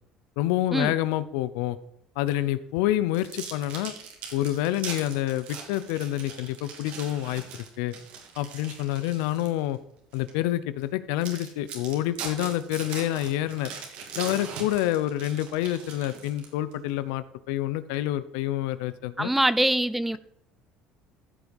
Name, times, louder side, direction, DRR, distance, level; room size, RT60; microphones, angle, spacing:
voice 1, 0.4-1.8 2.2-3.9 4.3-7.9 8.4-9.8 10.1-13.7 14.1-19.3, left 14 dB, 85° left, 0.7 m, -28 dB
Opening cheese slice packet, 3.1-9.6 10.1-10.3 10.8-10.9 11.2-16.7, right 6 dB, 70° right, 3.0 m, -40 dB
voice 2, 19.2-20.2, right 1 dB, 5° right, 0.6 m, -23 dB
15.0 x 5.3 x 4.8 m
supercardioid pair, 110°, 2 cm